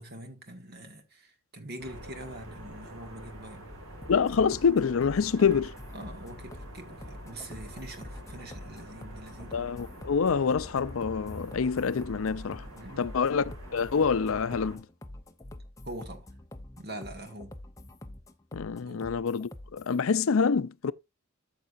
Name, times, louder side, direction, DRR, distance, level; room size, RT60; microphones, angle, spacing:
voice 1, 0.0-3.8 5.9-9.6 12.7-13.2 15.8-16.3 16.8-17.5 18.9-19.1, right 1 dB, 50° right, 1.9 m, -44 dB
sound 1, 1.8-14.8, equal, 80° right, 2.8 m, -46 dB
sound 2, 4.0-20.0, left 1 dB, 15° left, 0.8 m, -46 dB
voice 2, 4.1-5.7 9.5-12.6 13.0-14.8 18.5-20.9, left 6 dB, 80° left, 0.5 m, -26 dB
13.5 x 6.6 x 2.6 m
head